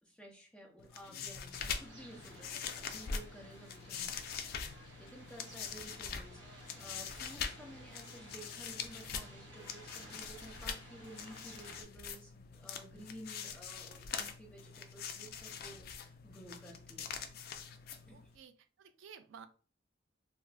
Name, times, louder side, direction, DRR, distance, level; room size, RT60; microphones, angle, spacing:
voice 1, 0.0-4.7 5.0-17.1 17.9-18.3, right 1 dB, 5° left, -1 dB, 0.7 m, -54 dB
sound 1, 0.8-18.4, left 6 dB, 55° left, 0.3 m, -44 dB
Guitar, 1.0-2.3, left 3 dB, 80° left, 0.8 m, -57 dB
sound 2, 1.6-11.8, equal, 25° right, 1.2 m, -55 dB
voice 2, 5.5-5.9 18.1-19.5, right 7 dB, 90° right, 10 dB, 0.4 m, -55 dB
2.4 x 2.3 x 3.3 m, 0.37 s
head